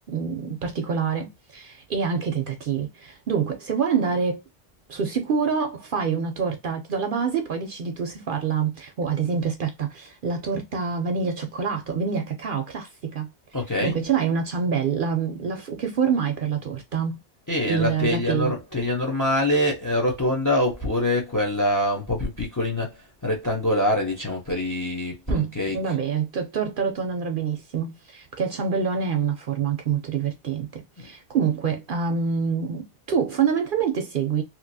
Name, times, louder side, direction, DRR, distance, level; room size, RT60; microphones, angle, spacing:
voice 1, 0.0-4.4 4.9-13.3 13.8-17.2 17.7-18.5 25.3-34.4, right 6 dB, 60° right, 0.6 m, -26 dB
voice 2, 13.5-14.0 17.5-25.9 31.0-31.1, left 1 dB, 20° left, 0.6 m, -25 dB
2.9 x 2.7 x 2.6 m
omnidirectional pair, 1.2 m